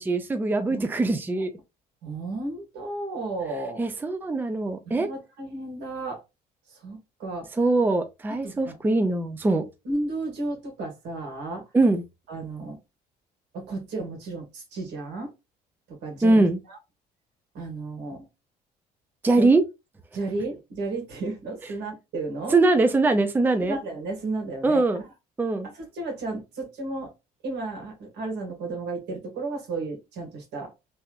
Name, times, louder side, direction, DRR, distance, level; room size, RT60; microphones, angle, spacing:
voice 1, 0.0-1.5 3.8-5.1 7.6-9.6 11.7-12.0 16.2-16.6 19.2-19.6 22.5-23.8 24.6-25.0 25.4-25.7, right 2 dB, 10° right, 0.5 m, -22 dB
voice 2, 2.0-3.8 4.9-6.2 6.7-7.5 8.4-8.8 9.8-11.6 12.3-12.8 13.5-15.3 15.9-16.8 17.5-18.3 19.4-19.5 20.1-22.6 23.7-24.8 25.7-27.1 27.4-30.7, right 2 dB, 85° right, 1.8 m, -33 dB
3.3 x 2.9 x 2.5 m
cardioid pair, 110°, 17 cm